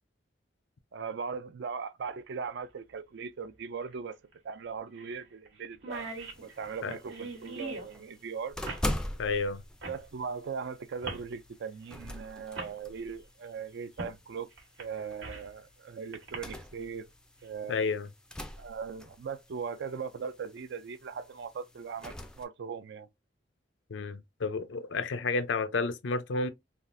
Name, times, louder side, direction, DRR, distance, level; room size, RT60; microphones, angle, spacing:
voice 1, 0.9-4.2 4.4-6.1 6.4-8.6 9.9-14.5 14.8-17.1 17.4-17.8 18.6-23.1, right 6 dB, 65° right, 0.4 m, -39 dB
sound 1, 2.0-2.1 3.9-4.0 4.3-4.4 5.0-5.2 5.5-5.6 5.7-7.9 8.7-8.9 9.8-10.0 11.0-11.3 12.1-12.2 12.5-12.7 14.0-14.2 14.6-15.5 16.1-16.4, right 2 dB, 80° right, 1.2 m, -40 dB
sound 2, 5.9-22.5, left 1 dB, 5° left, 0.4 m, -43 dB
voice 2, 9.2-9.6 17.7-18.1 23.9-26.5, left 4 dB, 80° left, 0.5 m, -31 dB
3.4 x 2.4 x 2.5 m
head